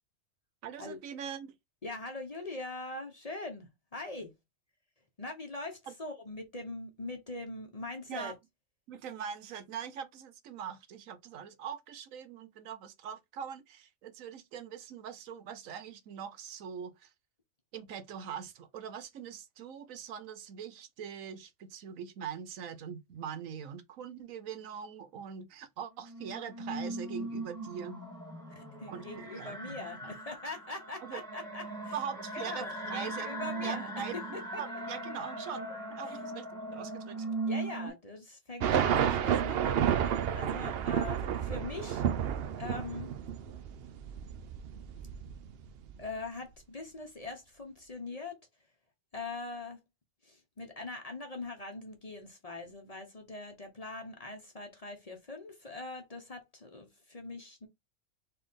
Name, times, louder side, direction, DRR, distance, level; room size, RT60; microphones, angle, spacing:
voice 1, 0.6-1.5 5.9-6.0 8.1-8.3 8.9-17.1 17.7-28.1 28.9-30.2 31.0-31.2 31.9-34.2 34.6-37.3, right 8 dB, 75° right, 1.1 m, -42 dB
voice 2, 1.8-4.3 5.2-8.3 28.5-31.9 32.3-34.6 36.1-36.2 37.5-42.0 42.6-43.1 46.0-48.4 49.1-49.8 50.2-57.7, left 2 dB, 30° left, 0.9 m, -42 dB
sound 1, 26.0-37.9, right 2 dB, 5° left, 1.4 m, -39 dB
sound 2, 38.6-45.9, right 9 dB, 60° right, 0.7 m, -31 dB
4.3 x 3.3 x 3.6 m
omnidirectional pair, 1.4 m